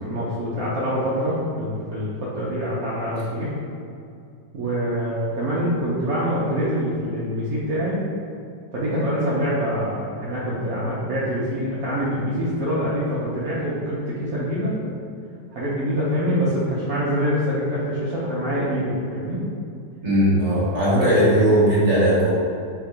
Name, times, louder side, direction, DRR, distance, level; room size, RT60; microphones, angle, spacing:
voice 1, 0.0-3.5 4.5-8.0 8.7-14.9 15.5-19.4 20.9-21.1, equal, 60° right, -9 dB, 1.0 m, -25 dB
voice 2, 20.0-22.3, equal, 25° right, -9 dB, 1.1 m, -18 dB
3.7 x 2.6 x 4.6 m, 2.5 s
omnidirectional pair, 1.9 m